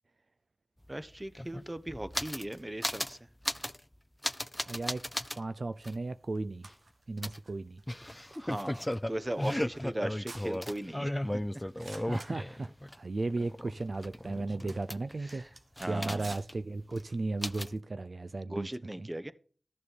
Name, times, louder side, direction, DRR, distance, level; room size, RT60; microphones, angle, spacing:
sound 1, 0.8-0.9 1.1-2.5 2.8-3.2 3.4-3.8 4.2-5.4 5.8-5.9 7.2-12.9 13.3-15.3 15.8-16.6 16.9-17.0 17.4-17.8, left 1 dB, 10° left, 0.5 m, -36 dB
voice 1, 0.9-3.2 8.4-11.4 15.2-15.5 15.8-16.3 18.4-19.3, right 1 dB, 20° right, 1.0 m, -38 dB
voice 2, 4.7-5.0 5.4-6.7 7.1-7.8 12.0-12.7 12.9-15.4 15.9-18.7 19.0-19.1, right 3 dB, 60° right, 0.5 m, -35 dB
sound 2, 5.8-17.3, right 3 dB, 75° right, 1.4 m, -56 dB
13.0 x 6.8 x 5.2 m
cardioid pair, 50°, 0 cm